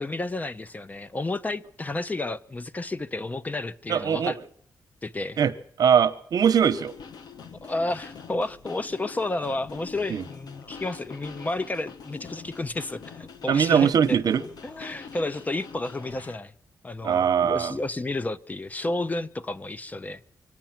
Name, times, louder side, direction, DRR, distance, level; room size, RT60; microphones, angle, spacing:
voice 1, 0.0-4.4 5.0-5.4 7.6-14.2 14.6-16.5 16.8-20.2, left 2 dB, 25° left, 0.6 m, -31 dB
voice 2, 3.9-4.3 5.4-5.5 5.8-6.9 10.1-10.2 13.5-14.4 17.0-17.7, right 8 dB, 70° right, 0.9 m, -21 dB
sound 1, 6.6-16.4, left 6 dB, 80° left, 1.2 m, -44 dB
24.5 x 9.1 x 5.9 m
cardioid pair, 105°, 7 cm